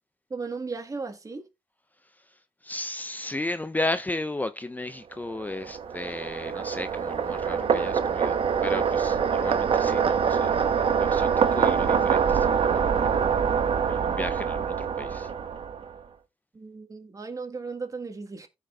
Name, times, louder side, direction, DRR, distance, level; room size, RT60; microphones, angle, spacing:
voice 1, 0.3-1.5 16.5-18.5, right 4 dB, 35° right, 1.6 m, -36 dB
voice 2, 2.0-10.6 10.9-13.2 13.8-15.3, left 2 dB, 15° left, 0.5 m, -35 dB
sound 1, 5.3-16.0, right 7 dB, 75° right, 1.0 m, -25 dB
15.0 x 5.2 x 2.3 m
cardioid pair, 75°, 10 cm